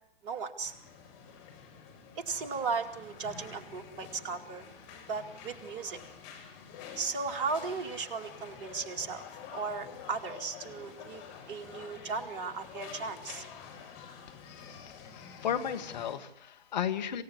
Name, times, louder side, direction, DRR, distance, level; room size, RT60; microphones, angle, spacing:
voice 1, 0.2-0.7 2.2-4.6 5.1-6.0 7.0-9.2 9.5-13.4, right 4 dB, 30° right, 6 dB, 2.5 m, -36 dB
sound 1, 0.6-16.2, left 7 dB, 35° left, 7.1 m, -48 dB
voice 2, 15.0-17.2, left 8 dB, 50° left, 8 dB, 2.2 m, -34 dB
27.5 x 17.0 x 9.7 m, 0.72 s
figure-of-eight pair, 120°, 29 cm